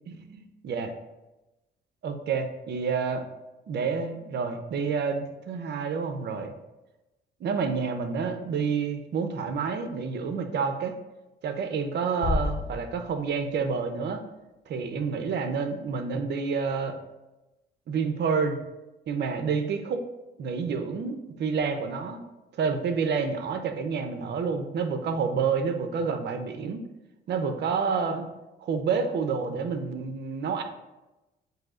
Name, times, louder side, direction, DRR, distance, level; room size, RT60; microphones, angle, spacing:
voice 1, 0.1-0.9 2.0-3.3 3.7-6.5 7.4-10.9 11.4-14.2 14.7-17.0 17.9-18.6 19.1-20.0 20.4-22.2 22.5-26.8 27.3-28.3 28.6-30.6, right 5 dB, 60° right, 7 dB, 0.6 m, -29 dB
sound 1, 12.2-14.2, left 3 dB, 40° left, 0.6 m, -32 dB
7.5 x 2.7 x 2.4 m, 1.0 s
cardioid pair, 90°, 20 cm